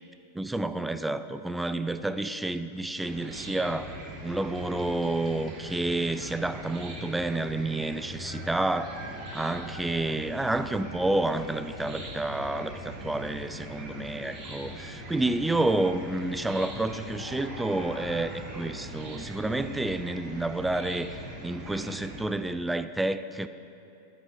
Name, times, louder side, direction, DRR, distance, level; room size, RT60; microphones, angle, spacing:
voice 1, 0.3-9.0 9.3-23.5, right 2 dB, 5° right, 11 dB, 0.4 m, -30 dB
Chicken rooster / Cricket, 3.1-22.2, right 1 dB, 30° right, 2.1 m, -41 dB
13.0 x 9.0 x 4.6 m, 2.9 s
figure-of-eight pair, 90°, 0 cm